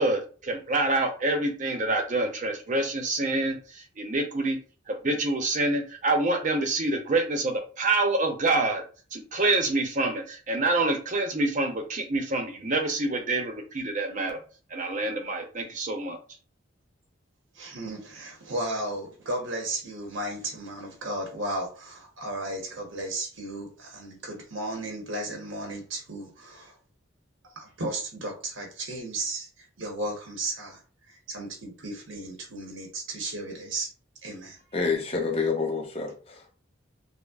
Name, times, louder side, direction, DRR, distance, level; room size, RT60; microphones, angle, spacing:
voice 1, 0.0-4.6 4.9-8.8 9.1-14.4 14.7-16.2, right 2 dB, 40° right, 0.6 m, -27 dB
voice 2, 17.5-26.7 27.5-30.8 31.1-33.9 34.2-34.6, right 1 dB, 80° right, 1.0 m, -34 dB
voice 3, 34.7-36.6, left 4 dB, 30° left, 0.7 m, -28 dB
5.2 x 2.1 x 2.4 m
head